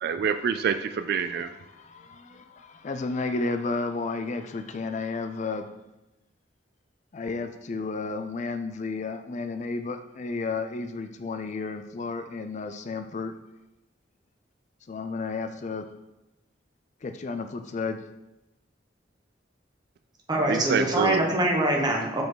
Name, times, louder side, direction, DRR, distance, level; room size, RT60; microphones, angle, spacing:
voice 1, 0.0-1.5 20.5-21.2, right 7 dB, 55° right, 10 dB, 0.3 m, -26 dB
voice 2, 1.4-5.8 7.1-13.3 14.9-15.9 17.0-18.0, left 3 dB, 40° left, 8 dB, 0.4 m, -32 dB
voice 3, 20.3-22.2, right 1 dB, 20° right, -1 dB, 1.3 m, -24 dB
7.0 x 5.0 x 3.9 m, 0.95 s
head